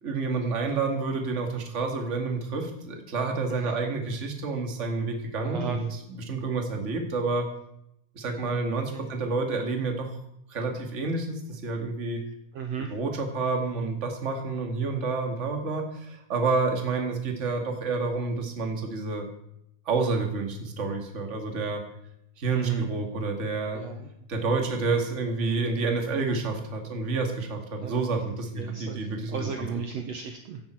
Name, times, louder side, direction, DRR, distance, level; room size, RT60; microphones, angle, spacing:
voice 1, 0.0-5.8 6.2-7.5 8.1-10.1 10.5-12.2 12.9-19.3 19.9-21.8 22.4-23.8 24.3-29.7, right 3 dB, 25° right, 3 dB, 2.0 m, -29 dB
voice 2, 5.4-5.8 8.9-9.0 12.5-12.9 22.5-22.9 23.7-24.1 27.8-28.1 28.6-30.6, right 6 dB, 65° right, 4 dB, 1.9 m, -35 dB
16.5 x 11.5 x 4.6 m, 0.78 s
omnidirectional pair, 3.8 m